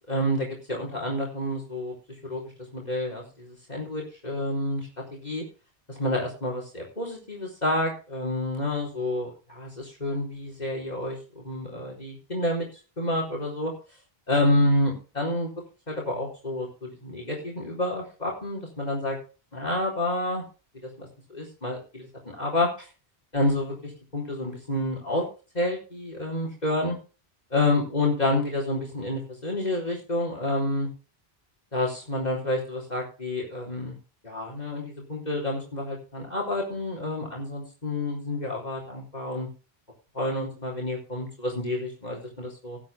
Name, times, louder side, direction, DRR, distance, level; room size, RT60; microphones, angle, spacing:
voice 1, 0.1-1.9 2.2-2.4 2.7-5.4 5.9-12.6 13.0-13.7 14.3-15.5 15.9-19.2 19.5-20.4 20.8-21.1 21.3-22.9 23.3-25.2 25.5-27.0 27.5-30.9 31.7-34.0 34.2-39.5 40.1-42.8, left 1 dB, 45° left, 0 dB, 4.4 m, -29 dB
19.5 x 8.9 x 3.7 m, 0.34 s
omnidirectional pair, 1.0 m